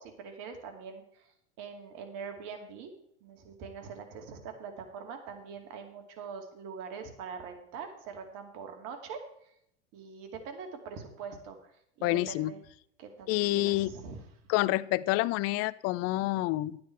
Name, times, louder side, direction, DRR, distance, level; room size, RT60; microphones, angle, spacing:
voice 1, 0.0-1.3 1.6-2.9 3.2-9.2 9.9-11.7 12.0-12.6 13.0-14.2, right 6 dB, 55° right, 5 dB, 2.5 m, -43 dB
voice 2, 12.0-12.5 13.3-13.9 14.5-16.8, left 18 dB, 45° left, 17 dB, 0.6 m, -28 dB
12.0 x 9.6 x 4.6 m, 0.72 s
hypercardioid pair, 110°, 35 cm